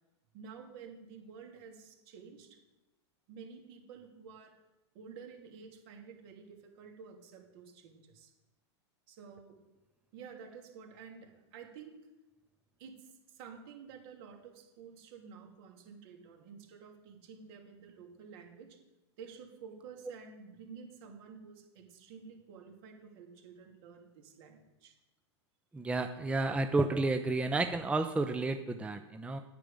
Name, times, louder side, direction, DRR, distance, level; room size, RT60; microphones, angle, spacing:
voice 1, 0.3-2.6 3.3-4.5 4.9-8.3 9.1-9.5 10.1-12.0 12.8-18.7 19.2-24.9, right 6 dB, 60° right, 1 dB, 2.8 m, -51 dB
voice 2, 25.7-29.4, right 3 dB, 10° right, 7 dB, 0.6 m, -31 dB
9.1 x 8.9 x 5.1 m, 1.0 s
hypercardioid pair, 110°, 15 cm